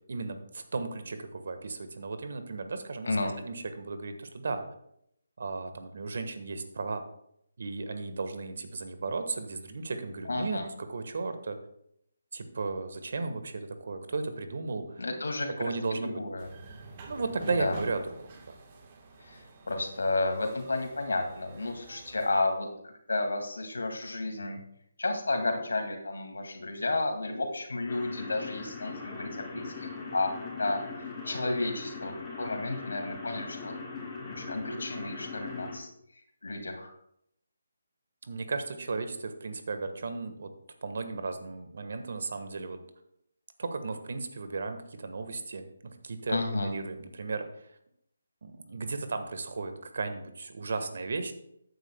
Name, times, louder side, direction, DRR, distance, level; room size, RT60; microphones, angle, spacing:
voice 1, 0.1-4.6 5.4-7.0 7.6-11.6 12.3-15.0 15.6-16.2 17.1-18.3 38.3-40.5 40.8-42.8 43.6-45.7 46.0-47.7 48.4-51.3, right 3 dB, 60° right, 8 dB, 1.3 m, -35 dB
voice 2, 10.2-10.7 15.0-16.5 17.4-17.8 19.2-24.6 25.0-30.3 30.6-30.8 31.2-33.7 34.2-35.9 36.4-36.9 46.3-46.7, left 2 dB, 75° left, 4 dB, 2.1 m, -32 dB
sound 1, 16.4-22.4, right 3 dB, 35° right, 1.3 m, -48 dB
sound 2, 27.9-35.8, left 4 dB, 15° left, 3.2 m, -40 dB
13.5 x 9.3 x 2.2 m, 0.74 s
figure-of-eight pair, 155°, 0 cm